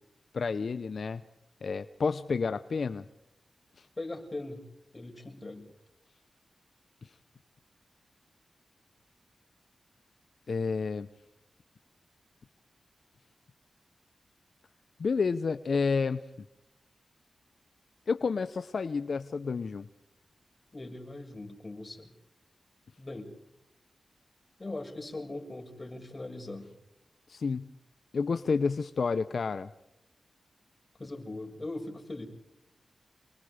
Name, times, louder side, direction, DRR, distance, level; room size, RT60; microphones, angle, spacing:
voice 1, 0.3-1.2 1.6-3.0 3.8-3.9 7.0-7.1 10.5-11.1 15.0-16.2 18.1-19.9 27.3-27.7 28.1-29.7, left 5 dB, 70° left, 11 dB, 0.9 m, -30 dB
voice 2, 4.0-4.6 4.9-5.7 20.7-22.1 23.0-23.3 24.6-26.7 31.0-32.3, left 2 dB, 30° left, 3 dB, 7.4 m, -40 dB
29.5 x 21.0 x 5.1 m, 0.85 s
cardioid pair, 55°, 0 cm